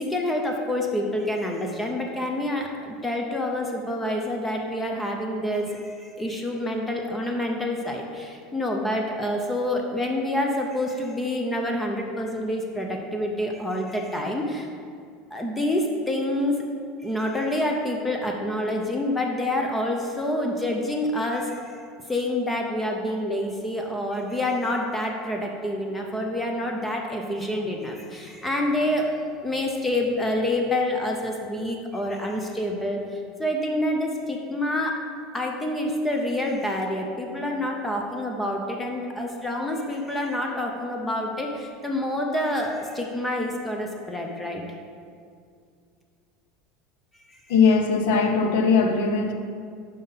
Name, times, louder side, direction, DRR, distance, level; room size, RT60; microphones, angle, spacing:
voice 1, 0.0-14.7 15.3-16.6 17.0-21.8 22.1-29.1 29.4-35.0 35.3-44.6, left 1 dB, 10° left, 1 dB, 0.6 m, -27 dB
voice 2, 47.5-49.3, left 5 dB, 80° left, 5 dB, 0.7 m, -20 dB
5.6 x 5.4 x 5.6 m, 2.3 s
supercardioid pair, 140°, 0 cm